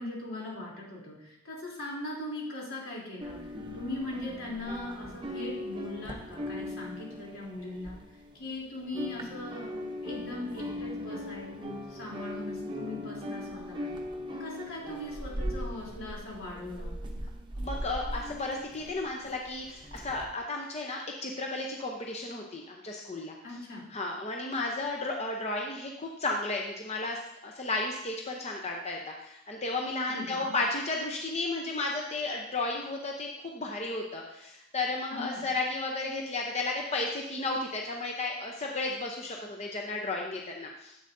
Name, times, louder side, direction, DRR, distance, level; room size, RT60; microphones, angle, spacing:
voice 1, 0.0-3.4 3.7-8.0 8.3-13.9 14.4-16.9 23.4-23.9 30.1-30.5 35.1-35.4, left 1 dB, 80° left, -4 dB, 3.2 m, -40 dB
sound 1, 3.2-8.5 8.8-20.2, left 1 dB, 20° right, 0.8 m, -39 dB
voice 2, 17.6-23.3 23.9-41.0, left 2 dB, 30° left, 0 dB, 0.7 m, -33 dB
10.0 x 7.8 x 2.6 m, 0.83 s
head